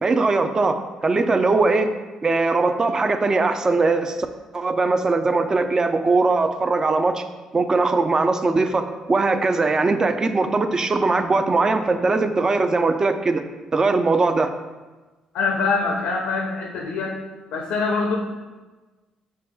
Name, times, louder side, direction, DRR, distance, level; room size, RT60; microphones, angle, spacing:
voice 1, 0.0-1.9 2.2-4.2 4.5-7.2 7.5-13.4 13.7-14.5, right 3 dB, 30° right, 8 dB, 0.4 m, -20 dB
voice 2, 15.3-17.2 17.5-18.2, left 4 dB, 75° left, 1 dB, 0.4 m, -24 dB
6.5 x 2.3 x 2.2 m, 1.2 s
hypercardioid pair, 55°, 2 cm